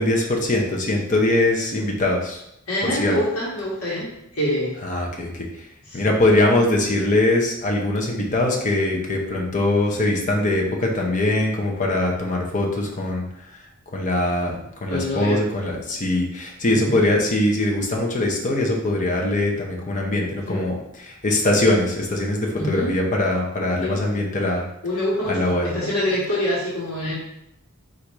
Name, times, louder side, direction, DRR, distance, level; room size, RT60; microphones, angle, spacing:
voice 1, 0.0-2.4 2.8-3.2 4.8-5.7 5.9-13.2 13.9-14.6 14.8-24.6 25.2-25.7, left 1 dB, 35° left, 0 dB, 0.7 m, -22 dB
voice 2, 2.7-4.7 5.8-6.0 14.9-15.4 16.7-17.0 20.5-20.7 22.6-23.0 23.8-24.0 24.8-27.1, left 1 dB, 85° left, -6 dB, 1.3 m, -25 dB
4.1 x 2.5 x 4.6 m, 0.79 s
head